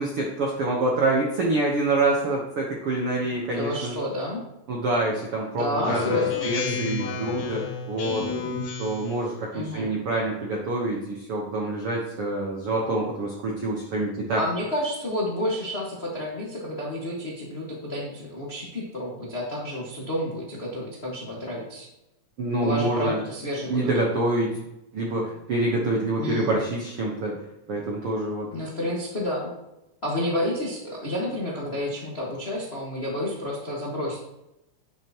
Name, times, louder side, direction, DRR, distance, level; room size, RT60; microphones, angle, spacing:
voice 1, 0.0-3.9 4.7-8.3 8.8-14.4 22.4-23.2 23.7-24.6 24.9-27.4 27.7-28.5, right 2 dB, 70° right, -2 dB, 1.3 m, -26 dB
voice 2, 3.5-4.4 5.5-6.5 9.5-9.9 14.4-21.9 22.6-23.9 26.2-26.6 28.5-29.5 30.0-34.2, left 1 dB, 45° left, -4 dB, 0.8 m, -30 dB
Speech synthesizer, 5.8-9.2, left 6 dB, 85° left, 3.5 m, -30 dB
11.0 x 8.8 x 3.0 m, 0.90 s
omnidirectional pair, 4.3 m